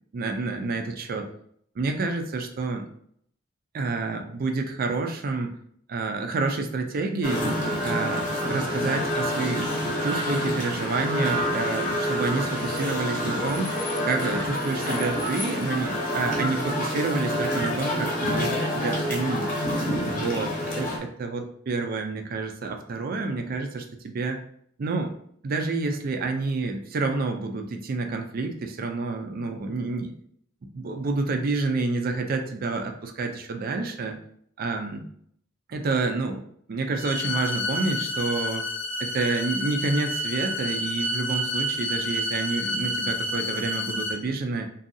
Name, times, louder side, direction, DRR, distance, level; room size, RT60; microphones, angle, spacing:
voice 1, 0.1-1.3 1.8-2.9 3.7-5.6 5.9-7.5 7.8-9.6 10.0-13.7 14.0-19.5 20.0-24.4 24.8-25.1 25.4-30.1 30.7-34.2 34.6-35.1 35.7-36.4 36.7-38.7 39.0-44.7, right 3 dB, 50° right, 4 dB, 0.4 m, -29 dB
sound 1, 7.2-21.0, equal, 40° left, 0.7 m, -27 dB
sound 2, 37.0-44.1, left 1 dB, 85° left, 0.7 m, -29 dB
2.6 x 2.3 x 2.6 m, 0.65 s
head